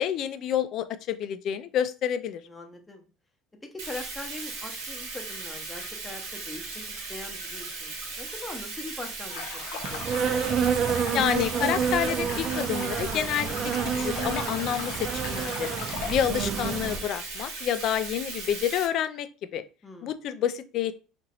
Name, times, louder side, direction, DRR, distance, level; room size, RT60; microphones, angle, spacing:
voice 1, 0.0-2.4 11.1-13.5 13.8-15.7 16.1-19.3 19.5-19.6 20.0-20.9, left 10 dB, 55° left, 11 dB, 0.3 m, -28 dB
voice 2, 2.5-3.0 3.7-10.4 19.8-20.1, left 2 dB, 15° left, 3 dB, 0.7 m, -42 dB
Bathtub (filling or washing), 3.8-18.9, right 3 dB, 90° right, 1.2 m, -37 dB
sound 1, 9.3-16.1, left 6 dB, 80° left, 0.7 m, -39 dB
Insect, 9.8-17.0, right 6 dB, 40° right, 0.4 m, -29 dB
2.9 x 2.5 x 2.8 m, 0.34 s
cardioid pair, 125°, 0 cm